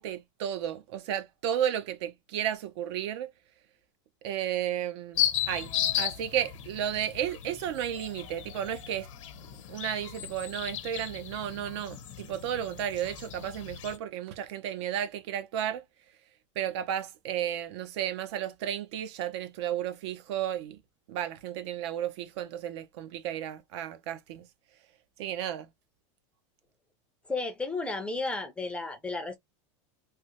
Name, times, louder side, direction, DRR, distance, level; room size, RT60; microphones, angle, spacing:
voice 1, 0.0-3.3 4.2-9.1 9.7-15.8 16.6-20.8 21.1-24.5 25.2-25.7, right 10 dB, 60° right, 0.7 m, -33 dB
sound 1, 5.2-14.0, left 10 dB, 90° left, 0.8 m, -35 dB
voice 2, 27.3-29.4, left 3 dB, 5° left, 0.5 m, -33 dB
3.3 x 2.1 x 2.9 m
supercardioid pair, 160°, 16 cm